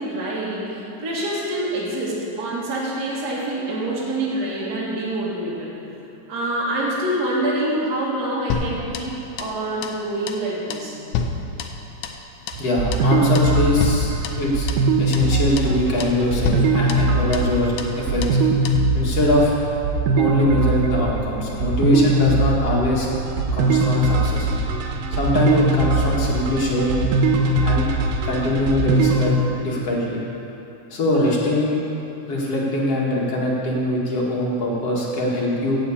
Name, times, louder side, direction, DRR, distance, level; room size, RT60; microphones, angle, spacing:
voice 1, 0.0-5.7 6.3-11.0, right 1 dB, 30° right, -6 dB, 2.5 m, -26 dB
sound 1, 8.5-9.6 9.8-10.0 10.3-10.5 10.7-12.2 12.5-12.7 12.9-13.1 13.4-13.5 13.8-14.9 15.1-15.3 15.6-15.8 16.0-16.2 16.4-17.5 17.8-18.0 18.2-18.4 18.7-18.8, left 5 dB, 75° left, 1.9 m, -29 dB
sound 2, 12.5-29.3, right 2 dB, 80° right, 2.5 m, -21 dB
voice 2, 12.6-14.7 15.0-18.4 18.9-19.6 20.2-23.1 23.5-24.5 25.1-27.0 27.6-27.9 28.2-30.2 30.9-31.8 32.3-35.8, left 1 dB, 50° left, -4 dB, 2.6 m, -22 dB
15.5 x 6.0 x 8.5 m, 3.0 s
omnidirectional pair, 3.9 m